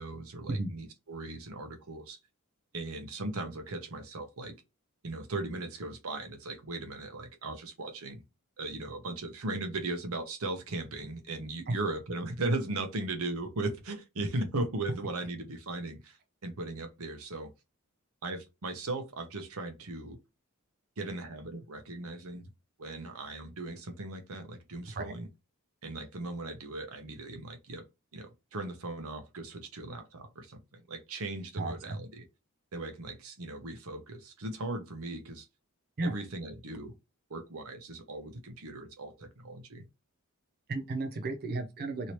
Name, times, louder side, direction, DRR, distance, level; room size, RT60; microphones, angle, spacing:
voice 1, 0.0-2.2 2.7-4.5 5.0-8.2 8.6-17.5 18.2-20.2 21.0-22.5 22.8-25.3 25.8-27.8 28.1-32.2 32.7-35.5 36.0-37.0 37.3-39.9, right 2 dB, 65° right, 0.8 m, -38 dB
voice 2, 31.6-32.0 36.0-36.2 40.7-42.1, right 2 dB, 45° right, 0.5 m, -34 dB
3.1 x 2.7 x 2.9 m
head